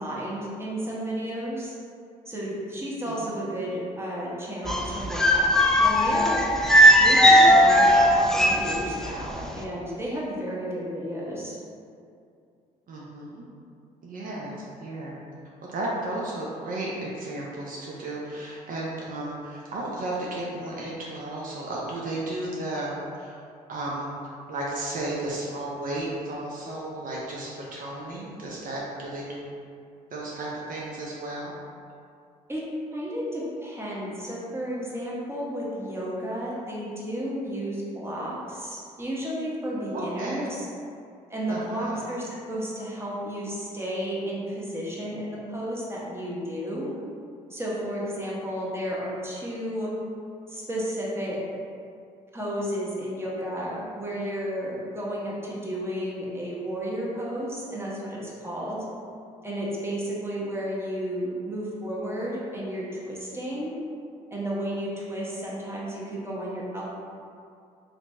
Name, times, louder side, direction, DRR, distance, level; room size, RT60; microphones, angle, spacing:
voice 1, 0.0-1.7 2.3-6.4 7.0-11.6 32.5-32.6 32.9-40.7 41.3-46.9 47.5-49.9 50.5-51.4 52.3-58.8 59.4-63.7 64.3-66.8, equal, 15° right, -6 dB, 1.0 m, -32 dB
sound 1, 4.7-9.1 9.4-9.6, equal, 5° left, 0.3 m, -18 dB
voice 2, 12.9-13.4 14.0-14.5 14.8-15.2 15.6-23.4 23.7-24.1 24.5-29.6 30.1-31.5 39.9-40.5 41.5-42.0, right 1 dB, 55° right, -5 dB, 0.6 m, -33 dB
2.8 x 2.7 x 3.3 m, 2.4 s
supercardioid pair, 65°, 16 cm